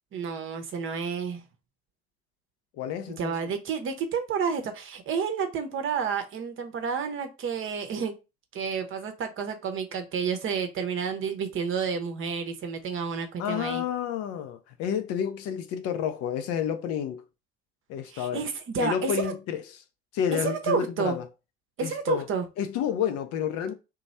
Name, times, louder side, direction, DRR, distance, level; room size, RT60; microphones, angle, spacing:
voice 1, 0.1-1.5 3.2-8.1 8.5-13.8 18.1-19.3 20.3-21.2 21.8-22.4, right 6 dB, 40° right, 0.8 m, -30 dB
voice 2, 2.8-3.5 13.4-17.2 17.9-18.4 18.8-19.6 20.1-21.2 21.8-22.3 22.6-23.7, left 9 dB, 50° left, 0.5 m, -30 dB
3.0 x 2.2 x 4.0 m
figure-of-eight pair, 50°, 32 cm